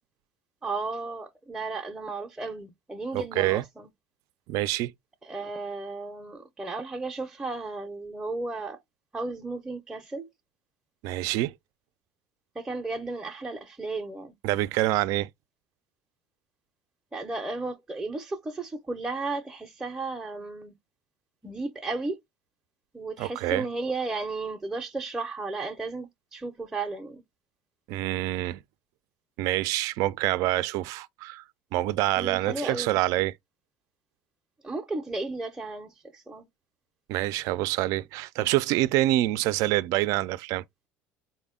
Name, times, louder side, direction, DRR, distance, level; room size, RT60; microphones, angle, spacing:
voice 1, 0.6-3.9 5.2-8.8 9.1-10.3 12.6-14.3 17.1-20.7 21.4-22.2 22.9-27.2 32.1-33.0 34.6-36.5, right 3 dB, 10° right, 0.6 m, -34 dB
voice 2, 3.1-3.6 4.5-4.9 11.0-11.5 14.4-15.3 23.2-23.6 27.9-28.6 29.4-31.4 31.7-33.4 37.1-40.6, right 16 dB, 70° right, 0.4 m, -26 dB
4.0 x 2.1 x 3.6 m
supercardioid pair, 100°, 6 cm